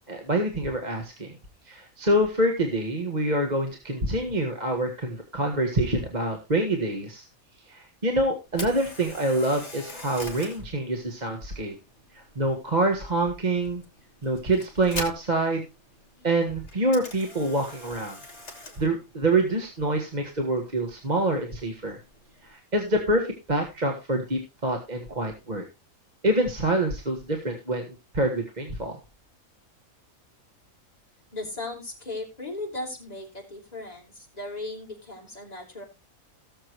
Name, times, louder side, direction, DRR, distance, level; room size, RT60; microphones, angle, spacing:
voice 1, 0.1-1.3 1.6-7.2 7.7-11.7 12.1-13.8 14.2-15.6 16.2-18.2 18.8-22.0 22.4-25.6 26.2-27.8 28.1-29.0, right 1 dB, 30° right, 3 dB, 1.7 m, -26 dB
Camera, 8.5-22.5, left 2 dB, 50° left, 3.3 m, -44 dB
voice 2, 31.3-35.8, left 2 dB, 30° left, -1 dB, 3.9 m, -37 dB
18.0 x 7.3 x 3.0 m, 0.26 s
omnidirectional pair, 1.5 m